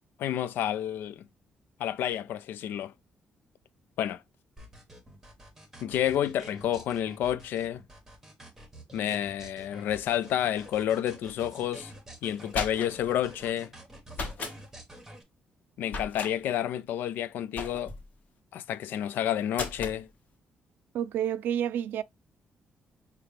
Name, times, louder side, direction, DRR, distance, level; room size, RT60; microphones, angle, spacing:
voice 1, 0.2-1.2 1.8-2.9 4.0-4.2 5.8-7.8 8.9-11.9 12.2-13.7 15.8-17.9 18.5-20.1, left 11 dB, 85° left, 0.4 m, -30 dB
sound 1, 4.6-15.2, right 1 dB, 10° right, 0.9 m, -48 dB
sound 2, 12.3-13.1 14.1-14.6 15.9-16.3 17.6-18.1 19.5-20.0, left 3 dB, 50° left, 1.1 m, -36 dB
voice 2, 20.9-22.0, right 10 dB, 80° right, 0.3 m, -29 dB
5.7 x 2.2 x 3.3 m
cardioid pair, 170°, 3 cm